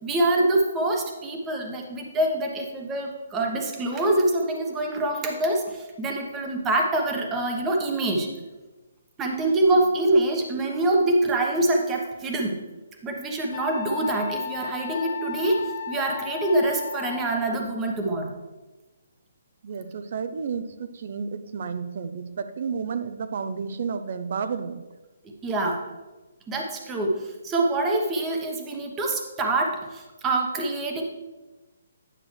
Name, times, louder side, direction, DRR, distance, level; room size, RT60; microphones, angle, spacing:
voice 1, 0.0-8.3 9.2-12.6 13.0-18.3 25.4-25.9 26.5-31.0, right 2 dB, 15° right, 1 dB, 1.1 m, -25 dB
Wind instrument woodwind instrument, 13.5-17.6, left 7 dB, 45° left, 0.5 m, -34 dB
voice 2, 19.6-24.8, right 6 dB, 55° right, 11 dB, 0.6 m, -31 dB
10.0 x 6.0 x 3.2 m, 1.2 s
hypercardioid pair, 155°, 0 cm